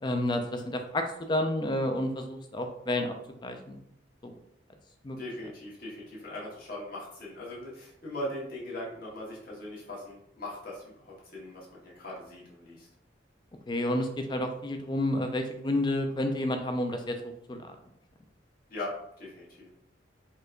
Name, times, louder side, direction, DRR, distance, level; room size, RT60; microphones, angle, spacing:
voice 1, 0.0-3.1 3.4-3.8 4.2-4.3 5.0-5.2 13.7-17.2 17.5-17.6, left 1 dB, 25° left, 5 dB, 0.4 m, -30 dB
voice 2, 5.2-12.9 18.7-19.7, left 1 dB, 50° left, -6 dB, 1.2 m, -40 dB
4.4 x 2.2 x 2.5 m, 0.76 s
head